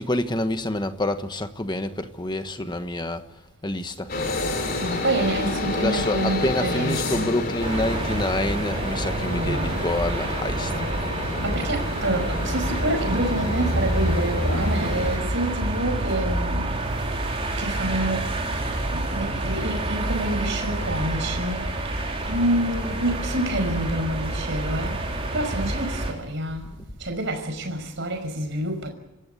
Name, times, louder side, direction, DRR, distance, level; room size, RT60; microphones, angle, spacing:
voice 1, 0.0-3.2 3.6-4.1 5.8-10.7, left 1 dB, 20° left, 1.3 m, -27 dB
sound 1, 4.1-15.2, left 2 dB, 45° left, 3.6 m, -30 dB
voice 2, 4.8-7.3 9.2-10.0 11.1-16.8 17.6-22.0 22.2-25.0 25.3-26.7 27.0-28.9, right 1 dB, 60° right, 5.5 m, -28 dB
sound 2, 7.6-26.1, right 1 dB, 30° right, 4.2 m, -28 dB
27.0 x 14.5 x 9.8 m
head